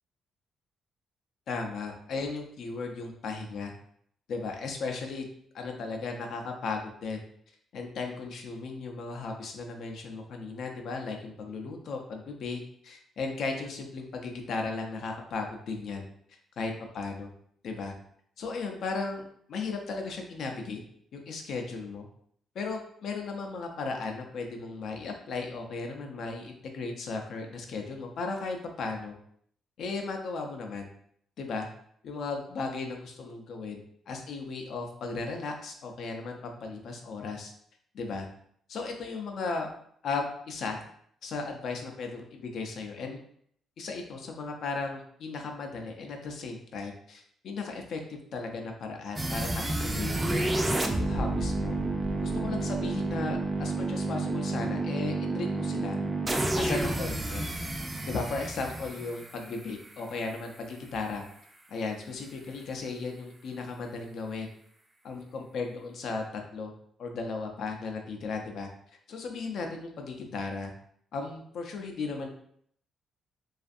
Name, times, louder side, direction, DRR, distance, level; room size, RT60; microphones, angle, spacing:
voice 1, 1.5-3.7 4.3-5.3 5.5-7.2 7.7-16.1 16.6-17.3 17.6-17.9 18.4-19.2 19.5-20.8 21.1-22.1 22.6-29.2 29.8-30.9 31.4-31.7 32.0-37.5 37.9-38.3 38.7-39.7 40.0-40.8 41.2-43.2 43.8-50.4 50.8-51.8 52.2-56.0 56.5-57.5 58.1-61.2 61.7-64.5 65.0-66.2 66.5-66.7 67.0-68.7 69.1-70.7 71.1-72.3, left 4 dB, 70° left, 3 dB, 0.4 m, -36 dB
sound 1, 49.2-60.1, right 2 dB, 20° right, 0.3 m, -30 dB
2.5 x 2.4 x 2.5 m, 0.67 s
cardioid pair, 90°, 0 cm